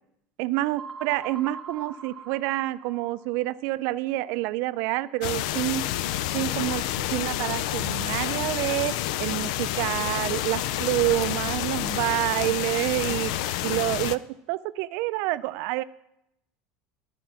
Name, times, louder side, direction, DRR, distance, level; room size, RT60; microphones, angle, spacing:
voice 1, 0.4-5.9 6.3-6.8 7.1-8.9 9.2-14.2 14.5-15.8, right 17 dB, 65° right, 16 dB, 0.4 m, -28 dB
sound 1, 0.8-3.4, right 5 dB, 15° right, 0.9 m, -41 dB
sound 2, 5.2-14.2, left 13 dB, 75° left, 0.3 m, -29 dB
11.0 x 4.5 x 5.9 m, 0.82 s
supercardioid pair, 110°, 4 cm